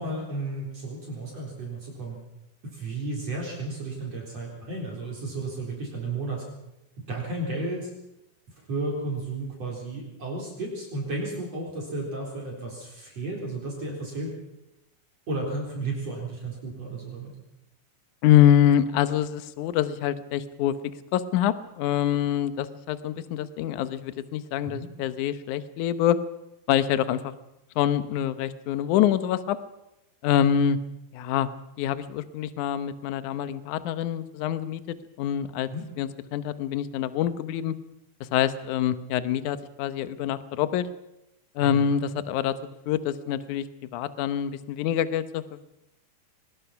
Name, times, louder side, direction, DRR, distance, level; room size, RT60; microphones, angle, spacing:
voice 1, 0.0-2.2 2.7-6.4 7.1-7.9 8.7-14.3 15.3-17.3 24.6-24.9 35.7-35.9 41.6-42.0, right 2 dB, 40° right, -2 dB, 4.9 m, -33 dB
voice 2, 18.2-20.8 21.1-26.2 26.7-27.4 27.8-29.6 30.2-30.8 31.1-31.5 31.8-35.7 36.0-37.7 38.3-40.9 41.6-42.5 42.9-43.7 43.9-45.6, left 10 dB, 70° left, 12 dB, 2.0 m, -25 dB
22.5 x 20.5 x 5.9 m, 0.89 s
omnidirectional pair, 4.5 m